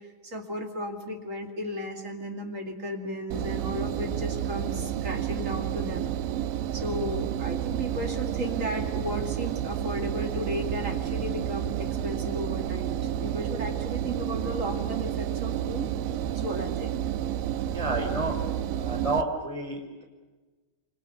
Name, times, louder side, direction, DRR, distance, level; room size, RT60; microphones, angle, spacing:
voice 1, 0.2-6.1 6.7-15.9 16.3-17.0, equal, 45° right, 2 dB, 1.0 m, -34 dB
Engine, 3.3-19.2, right 10 dB, 75° right, 3.1 m, -30 dB
voice 2, 17.7-18.3 18.8-20.0, right 2 dB, 5° right, 1 dB, 5.0 m, -30 dB
28.0 x 25.5 x 7.1 m, 1.3 s
omnidirectional pair, 5.6 m